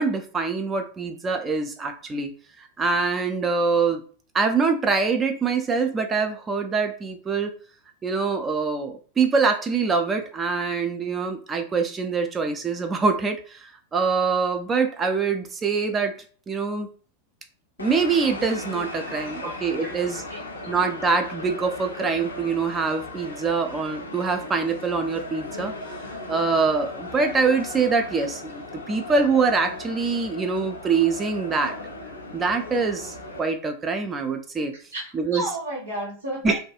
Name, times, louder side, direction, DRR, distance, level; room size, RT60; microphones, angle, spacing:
voice 1, 0.0-2.3 2.8-4.0 4.3-7.5 8.0-16.1 16.5-16.9 17.8-20.2 20.7-25.7 26.3-31.7 32.3-34.7 35.1-35.4 36.4-36.6, right 4 dB, 20° right, 6 dB, 0.4 m, -24 dB
sound 1, 17.8-33.4, left 2 dB, 75° left, 0.5 m, -37 dB
voice 2, 20.3-20.7 34.9-36.5, right 1 dB, 75° right, -5 dB, 1.2 m, -33 dB
2.6 x 2.2 x 2.3 m, 0.42 s
figure-of-eight pair, 90°, 0 cm